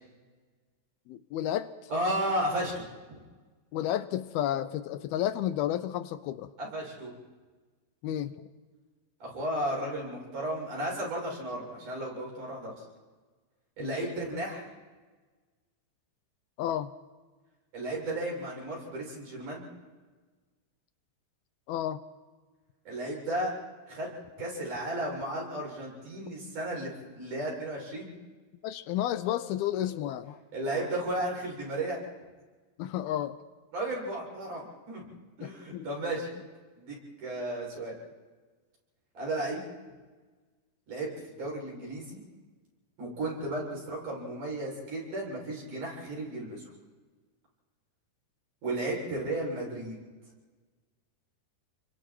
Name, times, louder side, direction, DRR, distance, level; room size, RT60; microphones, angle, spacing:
voice 1, 1.1-1.7 3.7-6.5 8.0-8.5 13.8-14.0 16.6-16.9 21.7-22.0 28.6-30.4 32.8-33.4 35.4-35.9, left 12 dB, 75° left, 12 dB, 2.5 m, -31 dB
voice 2, 1.9-2.8 3.1-3.2 6.6-7.1 9.2-12.7 13.8-14.7 17.7-19.7 22.9-23.5 23.9-24.1 24.4-28.1 30.5-32.0 33.7-35.1 35.4-36.3 36.8-37.9 39.2-39.6 40.9-42.2 43.0-46.6 48.6-50.0, right 1 dB, 50° right, -3 dB, 8.8 m, -34 dB
29.0 x 24.0 x 4.6 m, 1.3 s
omnidirectional pair, 4.8 m